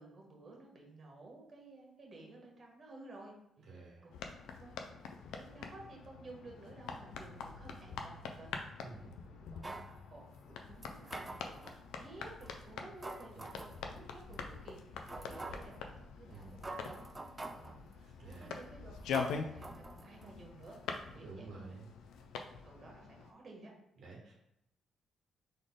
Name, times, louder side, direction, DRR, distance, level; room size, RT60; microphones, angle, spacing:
voice 1, 0.0-3.3 4.0-4.3 4.6-4.7 5.3-8.5 9.2-16.9 17.4-18.9 19.3-20.8 21.1-21.7 22.6-23.7, right 2 dB, 40° right, 0 dB, 1.4 m, -54 dB
voice 2, 3.7-4.1 8.8-9.1 16.3-16.6 18.2-18.5 21.2-21.9 24.0-24.3, right 3 dB, 65° right, -2 dB, 1.1 m, -50 dB
sound 1, 4.1-23.3, left 5 dB, 85° left, 0.5 m, -45 dB
sound 2, 9.6-9.9 10.8-11.8 12.4-12.5 13.0-13.8 14.3-14.4 15.1-15.8 16.3-16.4 16.6-17.8 18.3-18.6 19.1-20.4 20.6-20.7, right 2 dB, 20° right, 0.3 m, -46 dB
4.1 x 3.3 x 3.7 m, 0.80 s
cardioid pair, 90°, 0 cm